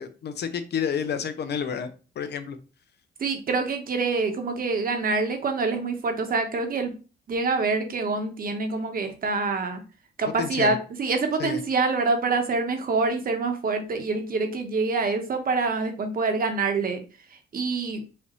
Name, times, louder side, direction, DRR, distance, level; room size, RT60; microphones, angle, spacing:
voice 1, 0.0-2.6 10.4-10.8 11.4-11.6, left 7 dB, 55° left, 9 dB, 0.7 m, -30 dB
voice 2, 3.2-6.9 7.3-9.8 10.2-17.0 17.3-18.0, right 4 dB, 45° right, 5 dB, 1.1 m, -26 dB
5.0 x 2.7 x 3.1 m, 0.33 s
cardioid pair, 90°, 20 cm